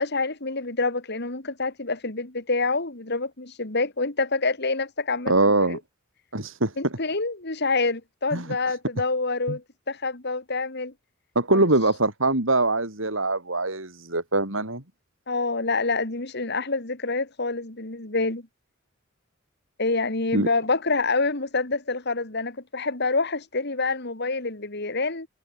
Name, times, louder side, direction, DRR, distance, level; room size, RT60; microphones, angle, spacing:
voice 1, 0.0-5.8 6.8-10.9 11.5-11.6 15.3-18.5 19.8-25.3, left 3 dB, 55° left, 3.0 m, -27 dB
voice 2, 5.3-5.8 6.3-6.7 8.3-8.7 9.5-9.6 11.3-14.8 20.3-20.5, right 2 dB, 75° right, 6.3 m, -23 dB
head